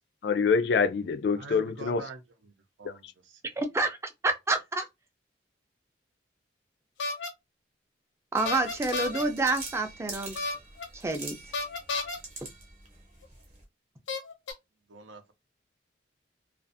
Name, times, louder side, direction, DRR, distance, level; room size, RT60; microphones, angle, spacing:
voice 1, 0.2-2.0 2.8-3.1, left 5 dB, 60° left, 0.3 m, -26 dB
voice 2, 1.4-2.2 2.8-3.4 14.9-15.3, right 3 dB, 90° right, 0.6 m, -45 dB
voice 3, 3.6-4.0 4.2-4.8 8.3-10.4 10.9-11.4, right 2 dB, 15° right, 0.4 m, -28 dB
sound 1, 7.0-7.3 8.5-9.2 10.3-10.8 11.5-12.2 13.2-13.3 14.1-14.5, left 3 dB, 90° left, 0.7 m, -32 dB
sound 2, 8.3-13.6, right 3 dB, 35° right, 0.8 m, -44 dB
2.5 x 2.3 x 2.5 m
head